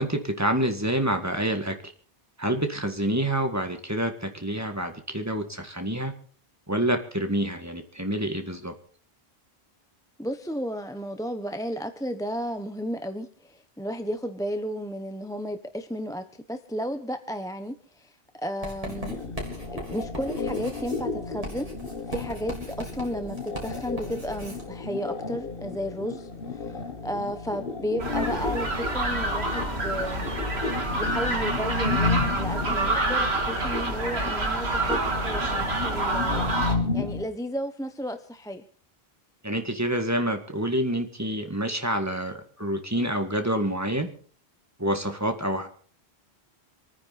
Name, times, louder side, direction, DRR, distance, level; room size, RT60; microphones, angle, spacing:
voice 1, 0.0-1.8 2.4-6.1 6.7-8.7 39.4-44.1 44.8-45.7, right 1 dB, 15° right, 5 dB, 1.9 m, -27 dB
voice 2, 10.2-19.3 19.7-21.7 22.1-30.3 30.9-36.5 36.9-38.6, equal, 5° left, 7 dB, 0.9 m, -33 dB
Writing, 18.6-24.7, right 1 dB, 35° right, 4.0 m, -39 dB
sound 1, 18.8-37.3, left 4 dB, 60° left, 1.9 m, -33 dB
sound 2, 28.0-36.8, right 2 dB, 85° right, 2.6 m, -27 dB
27.0 x 9.8 x 4.2 m, 0.43 s
omnidirectional pair, 1.1 m